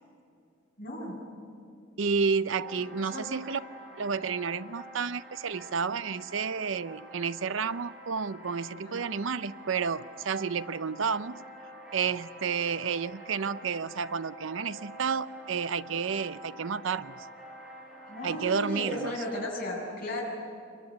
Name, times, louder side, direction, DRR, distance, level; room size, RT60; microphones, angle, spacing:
voice 1, 0.8-1.2 3.1-3.2 8.8-9.0 18.1-20.2, left 1 dB, 45° left, -3 dB, 7.4 m, -35 dB
voice 2, 2.0-3.6 4.0-11.4 11.9-17.3 18.2-19.1, right 5 dB, 70° right, 14 dB, 0.6 m, -31 dB
sound 1, 2.6-19.5, right 1 dB, 5° right, 5.8 m, -47 dB
26.5 x 22.5 x 9.5 m, 2.6 s
head